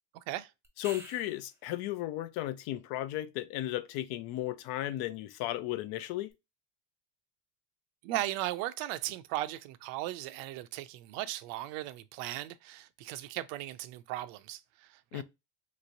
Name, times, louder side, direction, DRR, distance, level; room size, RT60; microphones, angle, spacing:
voice 1, 0.1-0.5 8.0-15.2, right 15 dB, 90° right, 0.5 m, -37 dB
sound 1, 0.6-1.6 6.3-6.4, right 1 dB, 5° right, 0.7 m, -48 dB
voice 2, 0.8-6.3 15.1-15.2, left 14 dB, 70° left, 0.5 m, -35 dB
3.3 x 3.0 x 2.5 m
cardioid pair, 140°, 40 cm